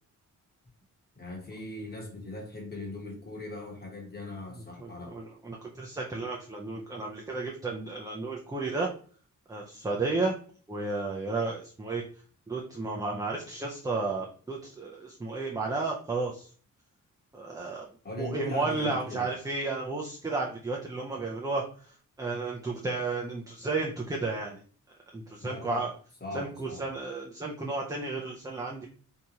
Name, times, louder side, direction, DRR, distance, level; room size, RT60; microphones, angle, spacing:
voice 1, 1.1-5.2 18.0-19.3 25.4-25.8 26.2-26.9, left 2 dB, 30° left, 0 dB, 1.1 m, -39 dB
voice 2, 4.8-8.9 9.5-10.4 10.7-12.0 12.5-16.5 17.3-17.9 18.2-24.6 25.1-25.9 26.3-28.9, right 3 dB, 10° right, -1 dB, 0.4 m, -33 dB
3.5 x 2.8 x 2.8 m, 0.43 s
wide cardioid pair, 140°, 32 cm